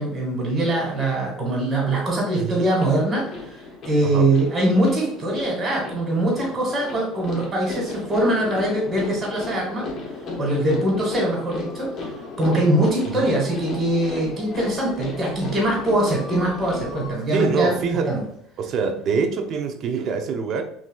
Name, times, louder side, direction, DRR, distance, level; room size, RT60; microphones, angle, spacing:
voice 1, 0.0-9.8 10.4-11.9 12.4-18.2, right 1 dB, 30° right, -3 dB, 1.6 m, -22 dB
voice 2, 2.4-2.7 4.0-4.3 13.0-13.3 17.3-18.2 18.6-20.6, right 5 dB, 50° right, 6 dB, 0.6 m, -25 dB
sound 1, 2.8-17.1, left 3 dB, 40° left, 1.1 m, -35 dB
5.9 x 2.7 x 2.3 m, 0.71 s
supercardioid pair, 115°, 0 cm